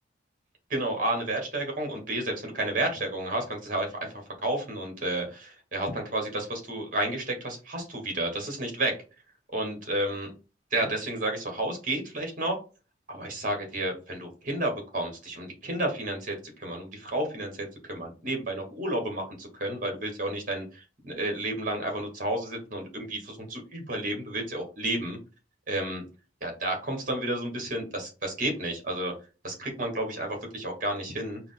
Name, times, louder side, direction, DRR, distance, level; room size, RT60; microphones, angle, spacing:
voice 1, 0.7-4.1 4.4-8.9 9.5-10.3 10.7-12.6 13.1-25.2 25.7-26.0 26.4-29.1 29.4-31.4, right 1 dB, 45° right, 3 dB, 1.3 m, -31 dB
4.7 x 2.0 x 3.8 m, 0.33 s
head